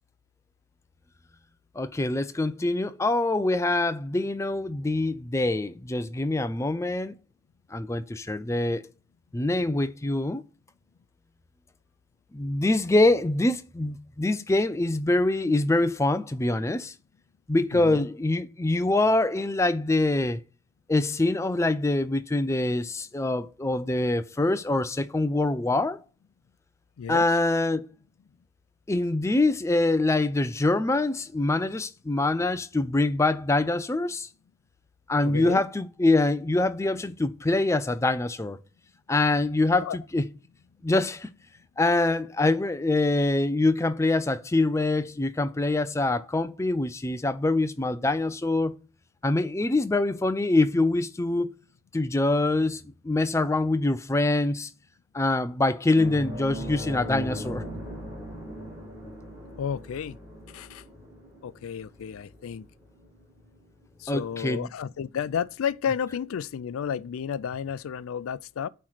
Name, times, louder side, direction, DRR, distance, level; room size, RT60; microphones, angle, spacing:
voice 1, 1.8-7.2 7.7-8.8 9.3-10.4 12.3-16.9 17.5-20.4 20.9-26.0 27.1-27.8 28.9-34.3 35.1-38.6 39.1-40.3 40.8-41.3 41.8-48.7 49.2-51.5 51.9-54.7 55.1-57.6 64.1-64.7, left 2 dB, 15° left, 0.4 m, -24 dB
voice 2, 17.7-18.1 27.0-27.3 35.2-35.6 39.8-40.0 59.6-60.2 60.5-60.8 61.4-62.7 64.0-68.7, left 7 dB, 85° left, 0.4 m, -32 dB
sound 1, 55.9-64.9 65.2-65.4 67.5-67.6, equal, 10° right, 2.4 m, -40 dB
8.6 x 3.1 x 5.7 m
head